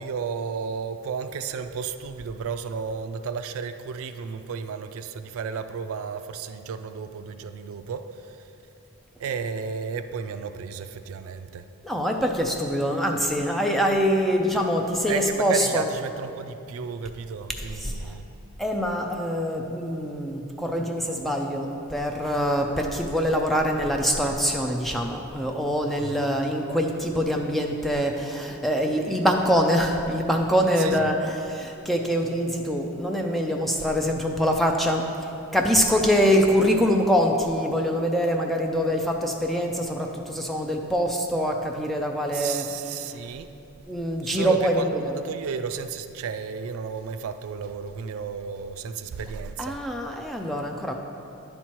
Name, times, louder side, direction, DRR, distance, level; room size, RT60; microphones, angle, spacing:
voice 1, 0.0-8.5 9.2-11.7 15.1-18.3 26.0-26.3 30.8-31.1 42.3-43.5 44.2-49.8, right 6 dB, 70° right, 10 dB, 0.3 m, -33 dB
voice 2, 11.8-15.9 17.6-18.2 18.6-43.0 43.9-45.2 49.6-50.9, equal, ahead, 2 dB, 0.4 m, -24 dB
10.0 x 4.3 x 4.5 m, 2.9 s
head